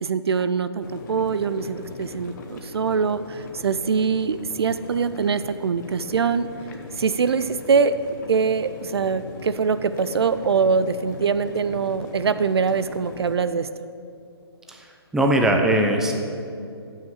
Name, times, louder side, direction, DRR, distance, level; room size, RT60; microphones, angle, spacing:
voice 1, 0.0-6.5 7.0-8.0 8.3-13.7, right 5 dB, 70° right, 13 dB, 0.4 m, -23 dB
sound 1, 0.8-13.4, left 3 dB, 45° left, 1.1 m, -39 dB
voice 2, 14.7-16.1, right 1 dB, 5° right, 2 dB, 0.5 m, -21 dB
7.3 x 5.8 x 7.3 m, 2.5 s
figure-of-eight pair, 135°, 14 cm